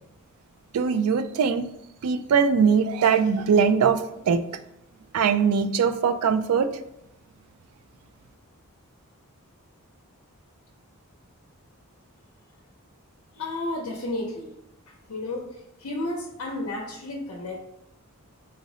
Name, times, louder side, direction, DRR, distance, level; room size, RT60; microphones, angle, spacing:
voice 1, 0.7-1.7 2.0-4.4 5.1-6.7, right 6 dB, 85° right, 9 dB, 0.3 m, -21 dB
voice 2, 13.4-14.5 15.1-15.4 15.8-17.6, left 2 dB, 70° left, -1 dB, 0.6 m, -32 dB
3.9 x 2.0 x 3.6 m, 0.83 s
head